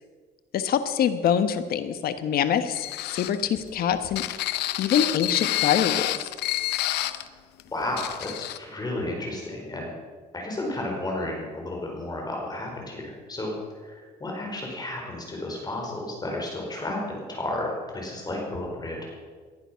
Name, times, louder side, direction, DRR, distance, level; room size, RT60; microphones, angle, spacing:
voice 1, 0.5-4.2 4.8-6.3, left 8 dB, 65° left, 10 dB, 1.3 m, -25 dB
sound 1, 2.7-7.3 7.6-7.7 8.0-8.6, left 15 dB, 80° left, 0.8 m, -28 dB
voice 2, 7.7-9.9 10.3-13.5 13.8-19.1, left 1 dB, 25° left, 0 dB, 4.8 m, -32 dB
19.0 x 11.0 x 5.8 m, 1.5 s
cardioid pair, 110°, 17 cm